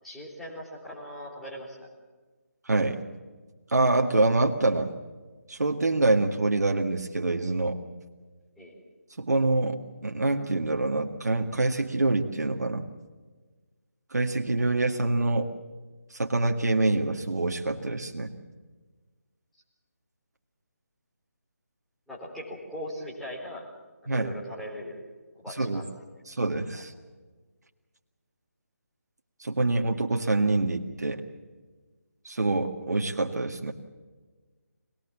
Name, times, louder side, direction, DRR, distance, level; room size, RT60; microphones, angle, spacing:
voice 1, 0.0-1.9 8.6-8.8 22.1-23.7 24.1-25.1 25.4-25.8 26.7-26.8, equal, ahead, -8 dB, 4.0 m, -40 dB
voice 2, 2.7-3.0 3.7-4.9 5.5-7.8 9.2-12.8 14.1-15.5 16.1-18.3 24.1-24.3 25.5-25.9 26.3-26.9 29.4-31.2 32.3-33.7, right 2 dB, 80° right, 3 dB, 1.9 m, -26 dB
23.5 x 19.5 x 7.3 m, 1.3 s
figure-of-eight pair, 165°, 9 cm